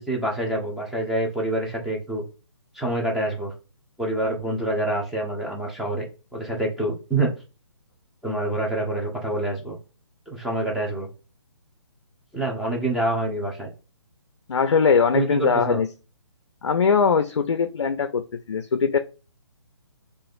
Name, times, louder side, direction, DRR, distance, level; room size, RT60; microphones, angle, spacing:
voice 1, 0.1-2.2 2.7-3.5 4.0-6.1 6.3-7.3 8.2-9.8 10.3-11.1 12.3-13.7 15.1-15.8, right 2 dB, ahead, 0.7 m, -26 dB
voice 2, 14.5-15.9 16.6-19.0, left 5 dB, 65° left, 0.5 m, -21 dB
4.8 x 2.4 x 2.4 m
figure-of-eight pair, 140°, 15 cm